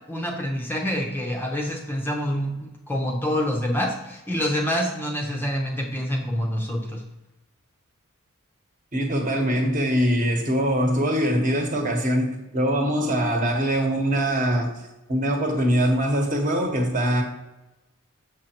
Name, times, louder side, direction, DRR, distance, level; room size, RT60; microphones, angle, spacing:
voice 1, 0.1-7.0, equal, 10° left, 1 dB, 0.6 m, -27 dB
voice 2, 8.9-14.7 15.1-17.2, equal, 35° right, 3 dB, 1.2 m, -23 dB
6.5 x 6.4 x 2.9 m, 1.0 s
head